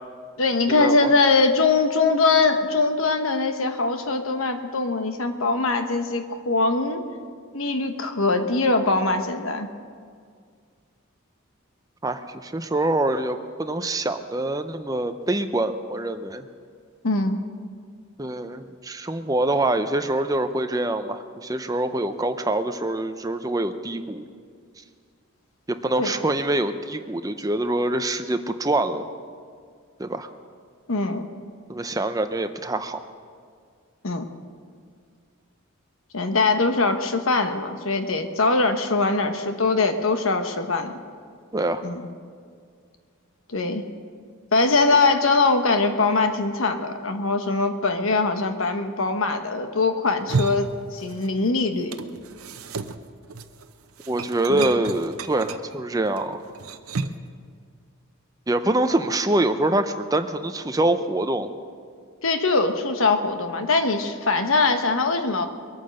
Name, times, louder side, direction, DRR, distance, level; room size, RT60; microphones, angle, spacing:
voice 1, 0.4-7.0 7.5-9.7 17.0-17.4 26.0-26.1 30.9-31.3 34.0-34.3 36.1-40.9 41.8-42.1 43.5-43.8 44.5-52.0 54.5-54.7 62.2-65.5, left 3 dB, 75° left, 7 dB, 1.2 m, -22 dB
voice 2, 12.0-16.4 18.2-24.3 25.8-29.0 30.0-30.3 31.7-33.0 41.5-41.8 54.1-56.4 58.5-61.5, right 2 dB, 15° right, 8 dB, 0.6 m, -25 dB
sound 1, 50.1-51.5 51.7-57.3, right 4 dB, 90° right, 0.7 m, -32 dB
22.0 x 9.1 x 6.5 m, 2.1 s
head